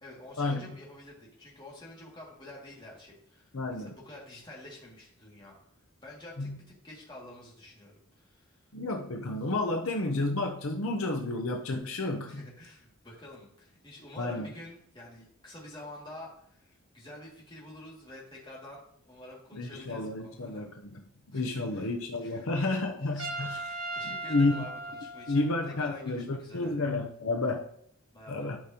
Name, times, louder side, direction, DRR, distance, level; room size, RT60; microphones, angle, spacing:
voice 1, 0.0-5.6 6.0-8.6 12.3-20.6 21.3-21.9 22.2-25.5 25.8-26.8 28.1-28.5, left 1 dB, 20° left, -4 dB, 2.2 m, -49 dB
voice 2, 3.5-3.9 6.4-6.6 8.7-12.5 14.2-14.5 19.5-21.0 21.3-23.7 24.0-24.6 25.3-27.7 28.3-28.6, left 2 dB, 70° left, 3 dB, 0.8 m, -31 dB
Trumpet, 23.2-25.9, right 2 dB, 80° right, 1.2 m, -38 dB
12.0 x 5.2 x 2.9 m, 0.68 s
head